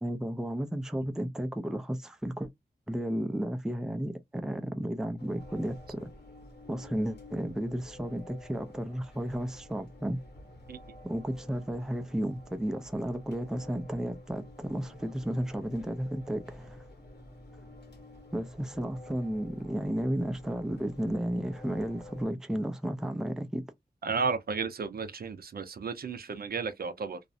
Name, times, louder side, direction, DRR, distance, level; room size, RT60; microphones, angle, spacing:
voice 1, 0.0-2.5 2.9-6.1 6.7-10.2 11.0-16.8 18.3-23.6, equal, 5° right, 0.4 m, -33 dB
sound 1, 5.2-22.2, left 1 dB, 85° left, 1.1 m, -50 dB
voice 2, 24.0-27.2, right 5 dB, 60° right, 0.5 m, -33 dB
2.4 x 2.0 x 2.6 m
wide cardioid pair, 115°, 17 cm